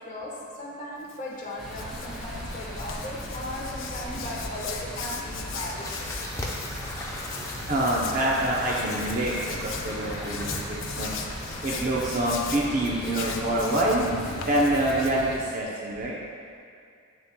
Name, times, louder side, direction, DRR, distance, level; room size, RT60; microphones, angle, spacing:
voice 1, 0.0-6.1 6.4-7.6 9.6-11.7 12.8-12.9 14.3-14.4, left 1 dB, 35° left, -4 dB, 1.1 m, -39 dB
Hands, 1.0-15.6, left 6 dB, 65° left, 0.5 m, -40 dB
sound 1, 1.6-15.4, equal, ahead, 1.5 m, -38 dB
sound 2, 5.6-12.3, left 1 dB, 15° left, 0.6 m, -40 dB
voice 2, 7.7-11.1 11.6-14.2 14.5-16.2, right 1 dB, 40° right, -4 dB, 0.6 m, -26 dB
8.7 x 6.8 x 2.2 m, 2.3 s
head